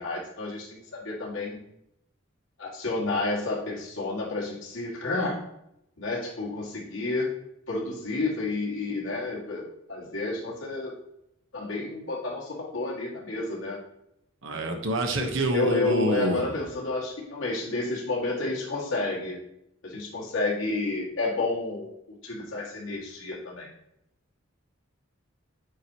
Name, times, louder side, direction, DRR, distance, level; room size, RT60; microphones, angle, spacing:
voice 1, 0.0-1.6 2.6-5.4 6.0-7.3 7.7-10.9 11.5-13.8 15.2-19.4 19.8-23.7, left 3 dB, 70° left, -4 dB, 2.0 m, -30 dB
voice 2, 14.4-16.5, right 1 dB, 70° right, 4 dB, 1.0 m, -27 dB
8.7 x 4.8 x 2.9 m, 0.80 s
head